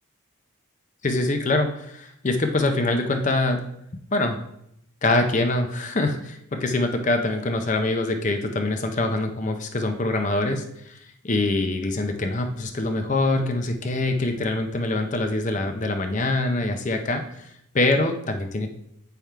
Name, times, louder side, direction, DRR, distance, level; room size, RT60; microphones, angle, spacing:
voice 1, 1.0-3.6 4.1-4.4 5.0-18.7, left 2 dB, 35° left, 5 dB, 0.5 m, -24 dB
8.7 x 3.5 x 4.5 m, 0.76 s
head